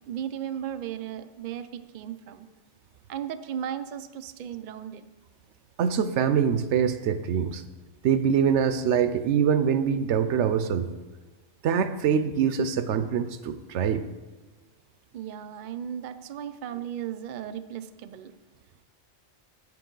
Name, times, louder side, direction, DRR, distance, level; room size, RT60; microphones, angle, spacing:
voice 1, 0.1-2.5 3.1-5.0 15.1-18.3, right 9 dB, 55° right, 10 dB, 0.5 m, -36 dB
voice 2, 5.8-7.6 8.0-10.9 11.6-14.0, right 7 dB, 85° right, 11 dB, 0.9 m, -24 dB
8.9 x 7.6 x 3.8 m, 1.2 s
omnidirectional pair, 1.2 m